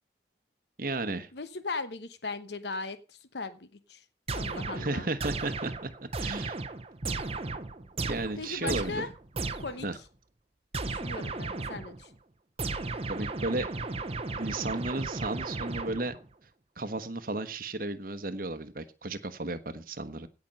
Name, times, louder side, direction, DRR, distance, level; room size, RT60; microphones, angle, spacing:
voice 1, 0.8-1.3 4.7-6.6 8.0-9.1 9.8-10.0 13.0-13.7 14.3-16.2 16.8-20.3, right 2 dB, 50° right, 11 dB, 1.2 m, -34 dB
voice 2, 1.3-4.0 4.3-5.1 8.4-9.1 9.6-9.9 10.8-12.1, left 3 dB, 75° left, 12 dB, 1.0 m, -38 dB
sound 1, 4.3-9.9 10.7-12.0 12.6-16.3, right 3 dB, 35° right, 0.9 m, -35 dB
16.5 x 6.0 x 5.4 m, 0.33 s
head